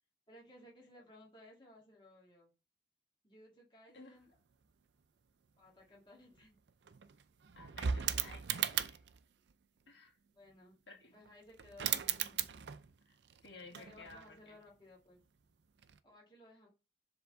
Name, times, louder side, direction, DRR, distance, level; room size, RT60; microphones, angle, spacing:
voice 1, 0.3-2.5 3.2-4.3 5.6-6.6 10.3-10.8 11.1-12.5 13.7-15.2 16.0-16.7, left 1 dB, 25° left, 1.9 m, -59 dB
sound 1, 6.4-6.5 6.7-9.2 11.3-11.4 11.6-13.0 13.2-14.4 15.8-16.0, right 9 dB, 75° right, 0.5 m, -37 dB
voice 2, 7.5-9.0 9.9-10.2 10.9-11.1 13.0-13.1 13.4-14.6, left 3 dB, 85° left, 1.8 m, -55 dB
7.5 x 3.6 x 3.5 m
head